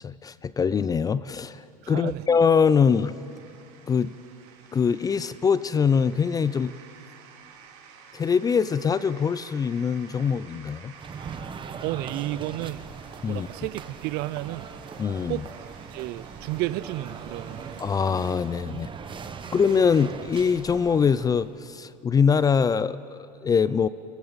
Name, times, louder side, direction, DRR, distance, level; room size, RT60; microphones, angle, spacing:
voice 1, 0.0-1.6 1.9-3.2 3.9-4.1 4.7-6.7 8.1-10.9 13.2-13.5 15.0-15.4 17.8-18.9 19.5-23.9, left 6 dB, 20° left, 0.3 m, -23 dB
sound 1, 1.6-18.4, right 7 dB, 75° right, 2.3 m, -51 dB
voice 2, 1.8-2.3 11.8-12.9 13.3-14.7 15.3-15.5 15.9-17.7 18.7-18.8, right 17 dB, 55° right, 0.5 m, -32 dB
sound 2, 10.9-21.6, right 6 dB, 25° right, 1.0 m, -40 dB
25.0 x 14.5 x 4.0 m
supercardioid pair, 110°, 20 cm